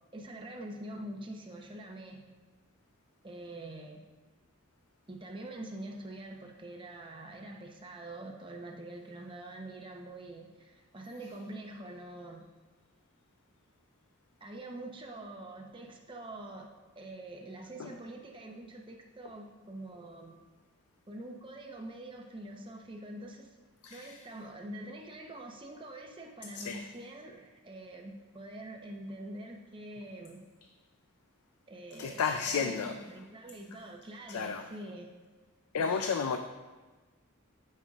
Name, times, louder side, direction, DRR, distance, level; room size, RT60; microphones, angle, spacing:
voice 1, 0.1-2.5 3.2-4.0 5.1-12.5 14.4-20.4 21.1-23.5 23.9-30.4 31.7-35.1, right 1 dB, 25° right, 1 dB, 0.8 m, -45 dB
voice 2, 23.8-24.2 26.5-26.8 32.0-32.9 34.3-34.6 35.7-36.4, left 6 dB, 90° left, 6 dB, 0.4 m, -32 dB
13.5 x 5.6 x 2.4 m, 1.3 s
head